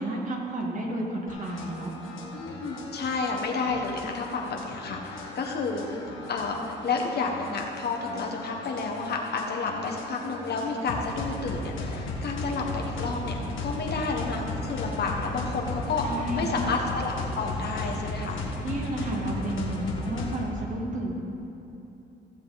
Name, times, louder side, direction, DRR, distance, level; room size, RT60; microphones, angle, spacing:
voice 1, 0.0-1.9 16.0-16.5 18.6-21.1, right 1 dB, 40° right, -2 dB, 2.1 m, -31 dB
sound 1, 1.3-20.5, left 2 dB, 85° left, 1.5 m, -36 dB
voice 2, 2.3-6.0 6.3-6.6 6.8-16.0 16.3-18.4, left 4 dB, 55° left, 1 dB, 1.4 m, -30 dB
15.5 x 7.3 x 4.2 m, 2.9 s
cardioid pair, 90°, 20 cm